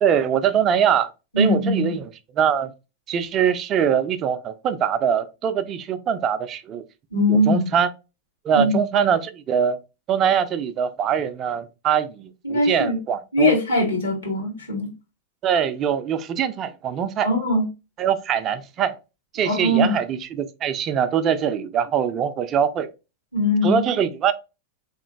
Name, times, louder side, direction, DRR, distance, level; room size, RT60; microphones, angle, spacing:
voice 1, 0.0-1.1 1.4-2.1 2.4-2.7 3.1-6.8 7.3-7.9 8.4-9.8 10.1-13.5 15.4-17.3 18.0-19.0 19.3-22.9 23.6-24.3, right 8 dB, 30° right, 0.3 m, -22 dB
voice 2, 1.3-1.9 7.1-7.7 8.5-8.8 12.4-13.0 13.3-14.9 17.2-17.6 19.4-19.9 23.3-23.8, left 1 dB, 75° left, 1.5 m, -21 dB
3.6 x 2.9 x 2.3 m
figure-of-eight pair, 90°, 0 cm